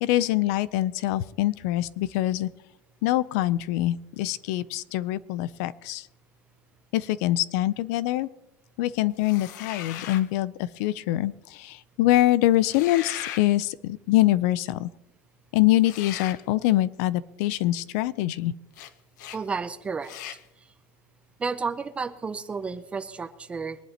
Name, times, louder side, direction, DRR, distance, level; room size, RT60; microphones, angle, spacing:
voice 1, 0.0-2.5 3.0-6.1 6.9-8.3 8.8-14.9 15.5-18.5, left 15 dB, 60° left, 18 dB, 0.5 m, -24 dB
sound 1, 9.2-10.3 12.6-13.5 15.8-16.4 18.7-18.9 19.2-19.4 20.0-20.4, left 11 dB, 75° left, 0.9 m, -38 dB
voice 2, 19.3-20.2 21.4-23.8, right 5 dB, 10° right, 11 dB, 0.5 m, -31 dB
23.0 x 11.0 x 2.9 m, 0.91 s
cardioid pair, 175°, 10 cm